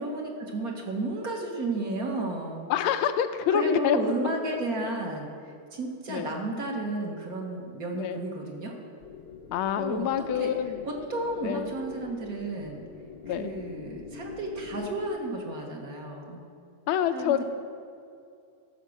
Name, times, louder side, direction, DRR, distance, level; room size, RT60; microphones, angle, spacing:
voice 1, 0.0-2.6 3.5-8.7 9.8-10.1 10.4-10.5 10.9-12.8 13.3-16.4 17.1-17.4, right 2 dB, 50° right, 1 dB, 1.6 m, -32 dB
voice 2, 2.7-4.0 6.1-6.3 7.9-8.2 9.5-10.9 11.4-11.7 13.2-13.5 16.9-17.4, left 9 dB, 85° left, 10 dB, 1.4 m, -27 dB
sound 1, 9.0-15.1, left 5 dB, 65° left, 1.3 m, -44 dB
14.5 x 5.9 x 6.4 m, 2.5 s
omnidirectional pair, 2.3 m